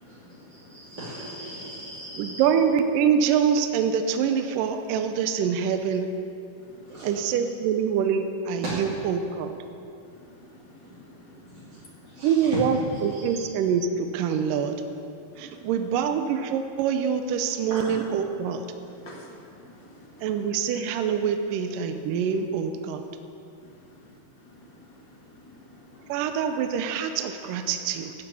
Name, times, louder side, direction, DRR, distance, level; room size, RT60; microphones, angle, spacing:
voice 1, 0.0-2.4 6.8-7.3 8.6-8.7 10.8-11.0 11.2-11.6 12.1-12.5 12.9-13.4 17.7-17.9, right 1 dB, 30° right, -11 dB, 3.0 m, -39 dB
voice 2, 2.1-6.1 7.0-9.5 12.2-14.7 15.4-18.6 20.2-23.0 26.1-28.1, right 7 dB, 75° right, 7 dB, 2.2 m, -25 dB
voice 3, 18.8-19.3 19.6-20.3 24.7-24.8 25.4-26.1, left 1 dB, 40° left, -2 dB, 2.0 m, -49 dB
13.0 x 8.9 x 8.5 m, 2.6 s
omnidirectional pair, 4.2 m